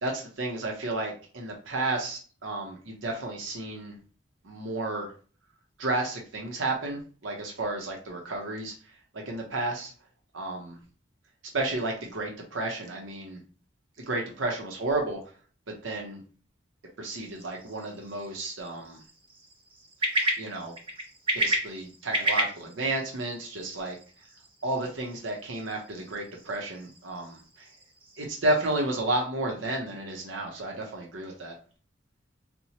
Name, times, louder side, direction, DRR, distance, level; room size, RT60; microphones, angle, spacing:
voice 1, 0.0-3.9 4.4-5.1 5.8-8.7 9.3-9.9 10.3-10.8 11.5-13.4 14.1-15.2 15.8-16.2 17.0-19.0 20.4-20.7 21.3-24.0 24.6-27.4 28.2-31.5, right 2 dB, 85° right, 0 dB, 0.7 m, -32 dB
sound 1, 17.2-28.8, right 1 dB, 30° right, 0.7 m, -34 dB
4.3 x 2.0 x 2.8 m, 0.39 s
head